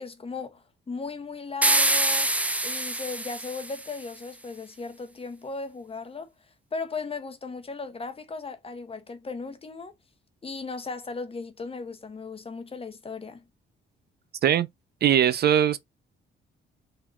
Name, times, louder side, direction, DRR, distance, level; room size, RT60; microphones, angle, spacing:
voice 1, 0.0-2.4 2.6-6.3 6.7-9.9 10.4-13.4, left 4 dB, 30° left, 1.0 m, -36 dB
sound 1, 1.6-4.0, right 1 dB, 5° right, 0.6 m, -25 dB
voice 2, 15.0-15.8, right 9 dB, 55° right, 0.5 m, -20 dB
3.9 x 2.8 x 3.7 m
cardioid pair, 90°, 20 cm